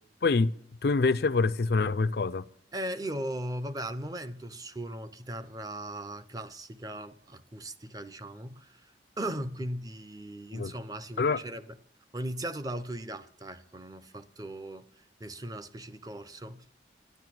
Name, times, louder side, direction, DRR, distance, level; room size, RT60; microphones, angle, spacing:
voice 1, 0.8-2.5 10.5-10.7 11.2-11.4, left 4 dB, 60° left, 0.5 m, -25 dB
voice 2, 2.7-8.9 9.2-11.7 12.1-14.9 15.2-16.6, right 1 dB, 20° right, 0.7 m, -38 dB
12.0 x 10.0 x 7.7 m
head